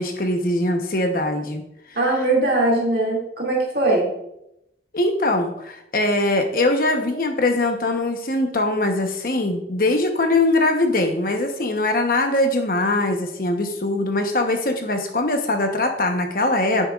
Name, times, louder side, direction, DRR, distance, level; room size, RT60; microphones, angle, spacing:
voice 1, 0.0-1.6 4.9-16.9, left 2 dB, 50° left, 4 dB, 1.0 m, -22 dB
voice 2, 2.0-4.1, right 2 dB, 55° right, -2 dB, 2.4 m, -20 dB
9.9 x 6.9 x 2.4 m, 0.80 s
head